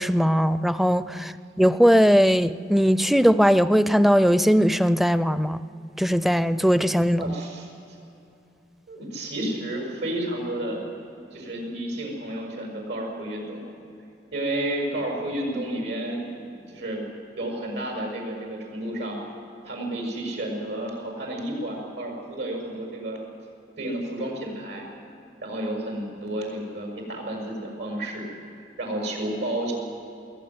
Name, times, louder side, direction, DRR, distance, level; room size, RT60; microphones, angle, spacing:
voice 1, 0.0-1.3 1.6-5.6 6.0-7.3, equal, ahead, 14 dB, 0.4 m, -19 dB
voice 2, 7.2-7.7 8.9-10.8 11.3-13.6 14.3-17.0 17.4-19.2 19.6-23.2 23.8-24.9 25.4-28.3 28.8-29.7, right 1 dB, 85° right, 0 dB, 6.9 m, -31 dB
22.0 x 17.0 x 9.6 m, 2.7 s
head